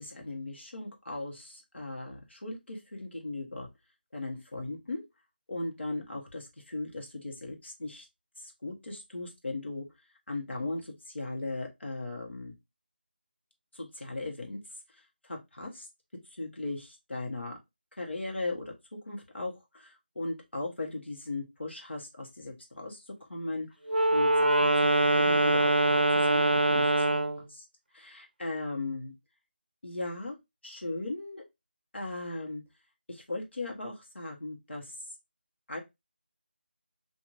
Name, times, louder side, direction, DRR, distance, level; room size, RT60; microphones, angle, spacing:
voice 1, 0.0-3.7 4.1-5.0 5.5-8.0 8.4-9.9 10.3-12.5 13.7-14.6 14.9-15.9 16.3-17.6 18.0-18.7 19.0-23.7 24.1-26.9 27.5-27.7 27.9-29.1 29.8-30.4 30.6-31.4 31.9-32.6 33.1-34.9 35.7-35.8, left 2 dB, 90° left, 0 dB, 1.2 m, -38 dB
Wind instrument woodwind instrument, 23.9-27.4, right 2 dB, 55° right, 0.4 m, -23 dB
2.6 x 2.6 x 3.1 m, 0.21 s
figure-of-eight pair, 180°, 6 cm